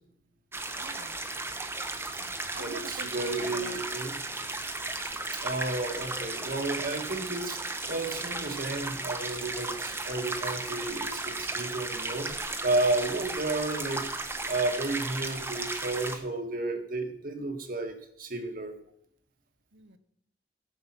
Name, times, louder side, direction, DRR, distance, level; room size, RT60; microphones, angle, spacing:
sound 1, 0.5-16.2, right 2 dB, 15° right, 1.0 m, -35 dB
voice 1, 0.7-1.2 2.2-3.8 13.0-13.1 19.7-20.0, right 3 dB, 75° right, 1.1 m, -45 dB
voice 2, 2.6-4.2 5.3-14.1 14.5-18.7, right 2 dB, 55° right, 1.6 m, -32 dB
15.5 x 7.4 x 5.9 m
head